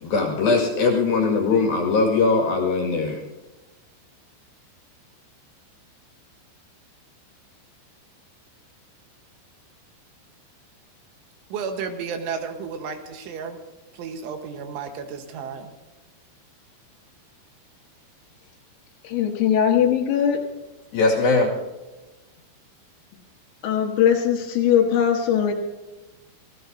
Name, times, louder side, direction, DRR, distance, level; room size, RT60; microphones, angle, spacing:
voice 1, 0.0-3.2 20.9-21.5, left 4 dB, 55° left, 0 dB, 3.3 m, -20 dB
voice 2, 11.5-13.6 13.9-15.7, right 6 dB, 75° right, 5 dB, 3.5 m, -32 dB
voice 3, 19.0-20.4 23.6-25.5, left 9 dB, 70° left, 2 dB, 3.5 m, -20 dB
26.5 x 16.0 x 2.7 m, 1.1 s
omnidirectional pair, 5.8 m